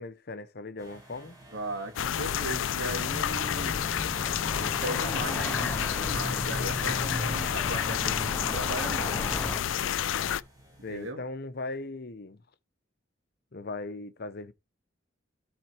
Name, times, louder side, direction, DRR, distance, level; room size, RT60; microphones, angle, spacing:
voice 1, 0.0-1.4 10.8-12.4 13.5-14.5, left 2 dB, 55° left, 0.8 m, -38 dB
sound 1, 0.8-11.1, right 1 dB, 20° right, 5.4 m, -55 dB
voice 2, 1.5-3.8 4.6-9.3 10.9-11.2, right 2 dB, 75° right, 2.2 m, -37 dB
sound 2, 2.0-10.4, left 9 dB, 85° left, 0.4 m, -30 dB
sound 3, 2.9-9.6, left 1 dB, 10° left, 0.5 m, -35 dB
12.5 x 4.4 x 4.5 m
head